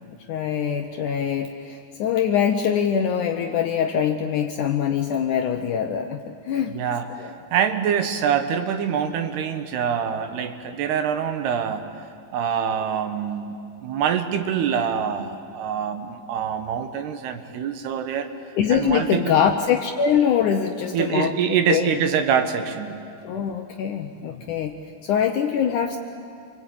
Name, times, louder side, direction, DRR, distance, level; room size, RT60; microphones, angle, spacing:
voice 1, 0.3-6.7 7.2-7.3 18.6-21.3 21.7-21.9 23.2-24.7 25.0-26.0, left 8 dB, 75° left, 5 dB, 1.9 m, -23 dB
voice 2, 6.7-7.1 7.5-11.9 12.3-18.3 18.7-19.3 20.9-23.0, right 8 dB, 80° right, 8 dB, 3.4 m, -25 dB
28.0 x 24.0 x 8.8 m, 2.4 s
omnidirectional pair, 4.6 m